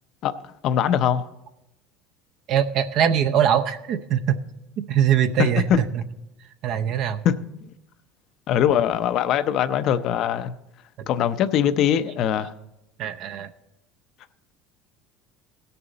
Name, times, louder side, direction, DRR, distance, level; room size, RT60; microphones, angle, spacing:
voice 1, 0.6-1.3 5.4-5.8 7.2-7.7 8.5-10.5 11.1-12.5, left 9 dB, 45° left, 0.5 m, -22 dB
voice 2, 2.5-4.4 4.9-6.0 6.6-7.2 13.0-13.5, right 9 dB, 50° right, 0.6 m, -22 dB
17.5 x 6.8 x 3.9 m
cardioid pair, 145°, 0 cm